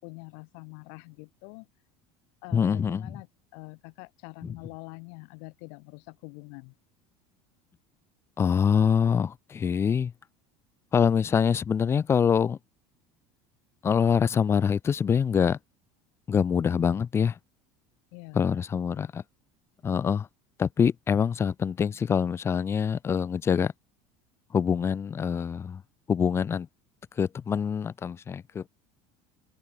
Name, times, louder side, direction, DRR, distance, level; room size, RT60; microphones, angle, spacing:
voice 1, 0.0-1.7 2.4-3.3 3.5-6.7 18.1-18.6, left 40 dB or more, 70° left, 4.2 m, -45 dB
voice 2, 2.5-3.1 4.4-4.5 8.4-10.1 10.9-12.6 13.8-15.6 16.3-17.3 18.3-19.2 19.8-20.3 20.6-23.7 24.5-25.8 26.1-26.7 27.2-28.7, left 7 dB, 20° left, 0.5 m, -25 dB
cardioid pair, 145°, 13 cm